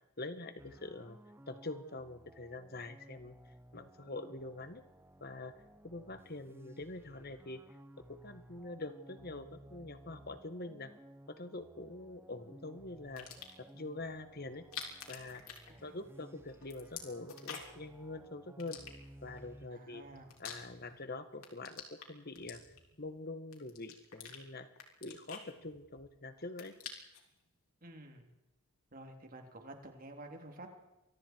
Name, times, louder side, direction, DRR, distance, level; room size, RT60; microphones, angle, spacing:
voice 1, 0.2-1.2 1.5-3.3 3.7-4.8 5.2-5.5 5.8-7.6 8.1-10.9 11.3-13.3 13.6-14.7 15.1-15.4 15.8-18.8 19.2-20.0 20.4-22.6 23.0-24.7 25.0-26.8, left 2 dB, 45° left, 10 dB, 1.8 m, -45 dB
sound 1, 0.6-19.7, equal, 10° right, 1.1 m, -57 dB
sound 2, 13.0-13.7 14.5-16.2 16.5-17.9 18.6-19.4 19.9-21.0 21.3-23.0 23.5-24.4 24.7-26.1 26.4-27.3, left 7 dB, 75° left, 5.0 m, -48 dB
voice 2, 19.7-20.3 27.8-28.3 28.9-30.7, right 1 dB, 40° right, 3 dB, 3.7 m, -50 dB
28.0 x 23.0 x 4.8 m, 0.95 s
head